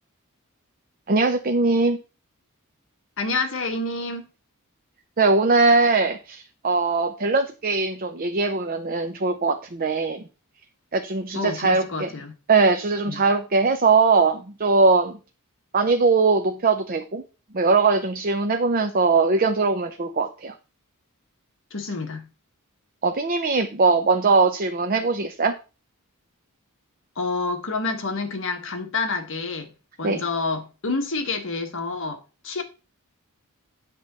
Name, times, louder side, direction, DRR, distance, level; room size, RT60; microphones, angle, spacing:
voice 1, 1.1-2.0 5.2-10.2 10.9-12.1 12.5-15.2 15.7-17.2 17.5-20.5 23.0-25.5 30.0-30.2, right 4 dB, 40° right, 0.7 m, -21 dB
voice 2, 3.2-4.3 11.3-12.3 13.1-13.2 21.7-22.3 27.1-29.7 30.0-32.6, left 3 dB, 60° left, 1.4 m, -28 dB
9.8 x 3.9 x 6.7 m
head